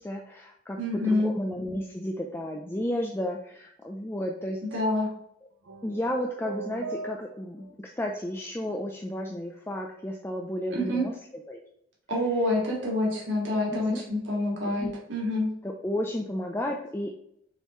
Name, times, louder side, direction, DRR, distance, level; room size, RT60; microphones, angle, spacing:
voice 1, 0.0-4.6 5.8-11.1 11.5-11.6 13.7-14.0 14.6-14.9 15.6-17.1, left 1 dB, 10° left, 1 dB, 0.4 m, -32 dB
voice 2, 0.8-1.3 4.7-5.1 10.7-11.0 12.1-15.5, left 1 dB, 60° right, -4 dB, 2.1 m, -27 dB
sound 1, 5.6-7.7, right 4 dB, 85° right, 0.7 m, -39 dB
6.6 x 4.6 x 3.1 m, 0.74 s
head